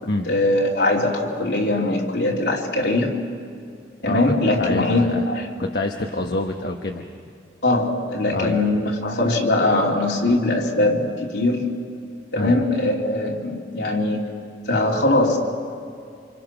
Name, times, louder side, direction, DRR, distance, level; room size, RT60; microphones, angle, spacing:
voice 1, 0.0-3.2 4.0-5.5 7.6-11.7 12.3-14.3 14.7-15.4, left 2 dB, 80° left, -1 dB, 3.2 m, -21 dB
voice 2, 4.1-5.2 5.6-7.1 8.3-8.6 12.4-12.6, left 2 dB, 65° left, 2 dB, 1.2 m, -27 dB
29.0 x 27.0 x 6.0 m, 2.3 s
head